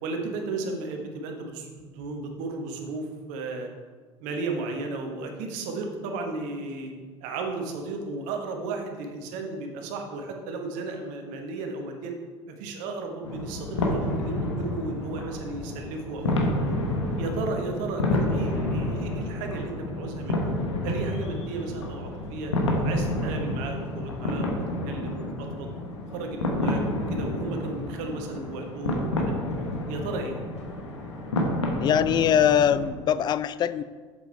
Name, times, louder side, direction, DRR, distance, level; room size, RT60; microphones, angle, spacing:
voice 1, 0.0-3.7 4.2-6.9 7.2-12.1 12.5-16.7 17.2-20.5 20.8-22.5 22.8-25.7 26.1-29.3 29.9-30.4, right 3 dB, 60° right, 3 dB, 1.4 m, -34 dB
sound 1, 13.2-32.9, left 1 dB, 80° left, 1.2 m, -29 dB
voice 2, 31.8-33.8, left 9 dB, 30° left, 16 dB, 0.4 m, -22 dB
7.6 x 7.2 x 4.5 m, 1.5 s
figure-of-eight pair, 65°, 15 cm